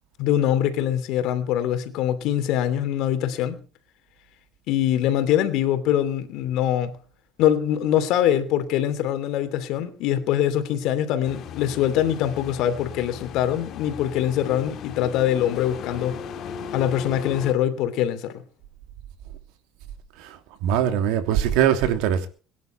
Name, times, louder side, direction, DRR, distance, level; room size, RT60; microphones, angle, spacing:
voice 1, 0.2-3.6 4.7-7.0 7.4-16.2 16.7-18.4, left 11 dB, 65° left, 2.8 m, -23 dB
sound 1, 11.2-17.5, left 7 dB, 50° left, 2.4 m, -36 dB
voice 2, 20.2-22.3, right 10 dB, 80° right, 2.9 m, -22 dB
23.0 x 10.5 x 4.4 m
cardioid pair, 130°, 0 cm